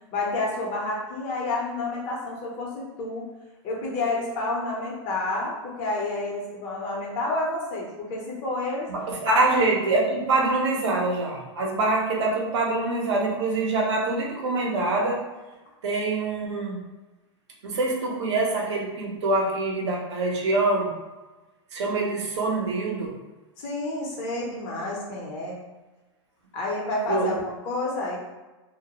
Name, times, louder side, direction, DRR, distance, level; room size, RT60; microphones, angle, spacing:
voice 1, 0.1-3.3 3.6-8.9 9.2-9.4 23.6-25.6 26.5-28.2, left 2 dB, 45° left, -3 dB, 0.8 m, -29 dB
voice 2, 8.9-15.2 15.8-16.8 17.6-20.9 21.7-23.1 27.1-27.3, right 2 dB, 75° right, -1 dB, 0.7 m, -25 dB
2.2 x 2.1 x 2.9 m, 1.2 s
hypercardioid pair, 125°, 15 cm